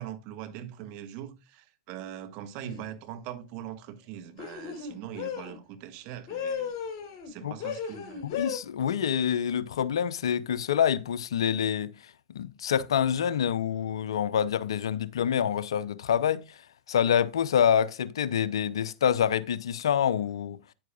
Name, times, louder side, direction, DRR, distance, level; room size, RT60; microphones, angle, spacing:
voice 1, 0.0-6.7 7.3-8.2, right 11 dB, 50° right, 1.5 m, -41 dB
sound 1, 2.6-2.9 4.4-5.6 6.3-7.3 7.6-8.6, left 7 dB, 50° left, 3.4 m, -35 dB
voice 2, 8.2-11.9 12.3-16.6 16.9-20.6, left 8 dB, 75° left, 0.6 m, -26 dB
9.4 x 9.0 x 2.4 m
hypercardioid pair, 100°, 3 cm